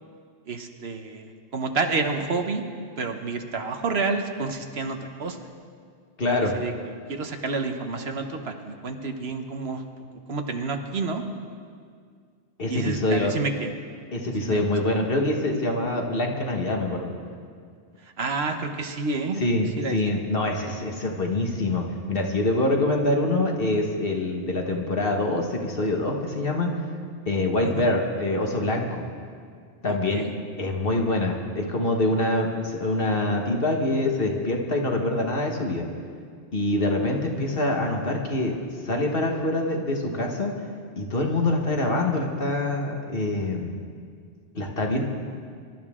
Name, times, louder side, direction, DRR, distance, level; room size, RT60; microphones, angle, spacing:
voice 1, 0.5-2.6 3.0-5.4 6.3-9.8 10.3-11.2 12.7-13.7 14.4-15.0 18.0-19.4 19.8-20.0 27.6-27.9 29.9-30.3 37.3-37.4, right 4 dB, 60° right, 6 dB, 1.2 m, -29 dB
voice 2, 6.2-6.5 12.6-13.3 14.1-17.2 19.4-26.7 27.3-29.0 29.8-30.2 30.6-35.9 36.5-38.6 38.8-40.5 41.0-43.8 44.6-45.0, left 2 dB, 50° left, 1 dB, 1.7 m, -25 dB
24.5 x 12.5 x 3.7 m, 2.1 s
omnidirectional pair, 1.2 m